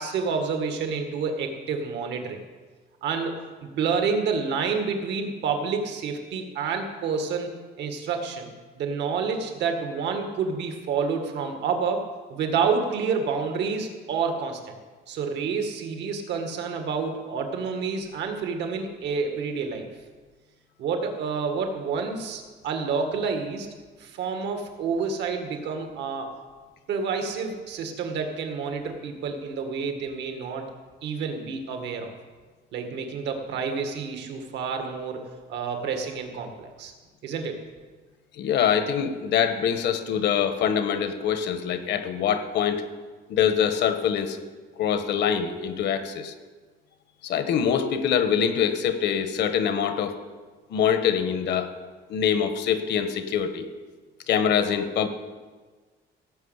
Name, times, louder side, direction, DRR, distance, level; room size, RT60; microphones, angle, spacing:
voice 1, 0.0-2.4 3.0-7.5 7.8-8.5 8.8-12.0 12.3-14.7 15.1-19.9 20.8-23.7 24.0-26.3 26.9-30.7 31.0-32.2 32.7-35.2 35.5-36.9 37.2-37.6, right 5 dB, 70° right, 4 dB, 1.9 m, -29 dB
voice 2, 38.3-42.8 43.3-44.4 44.8-46.3 47.2-50.2 50.7-51.7 52.1-53.7 54.3-55.1, left 8 dB, 70° left, 9 dB, 1.3 m, -24 dB
17.0 x 6.3 x 8.1 m, 1.4 s
cardioid pair, 160°, 19 cm